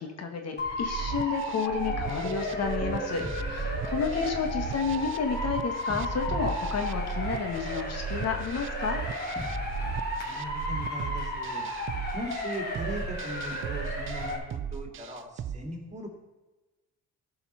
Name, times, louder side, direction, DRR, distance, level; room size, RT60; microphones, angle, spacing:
voice 1, 0.0-9.0, left 5 dB, 55° left, 5 dB, 1.4 m, -31 dB
Motor vehicle (road) / Siren, 0.6-14.4, left 1 dB, 35° left, 3.6 m, -34 dB
sound 1, 0.8-15.6, right 8 dB, 45° right, 0.5 m, -38 dB
sound 2, 1.9-7.7 9.4-10.4, equal, 5° left, 1.7 m, -38 dB
voice 2, 3.8-4.4 10.2-11.7 12.1-16.1, equal, 25° right, 2 dB, 2.6 m, -39 dB
14.0 x 5.7 x 5.5 m, 1.1 s
cardioid pair, 90°, 30 cm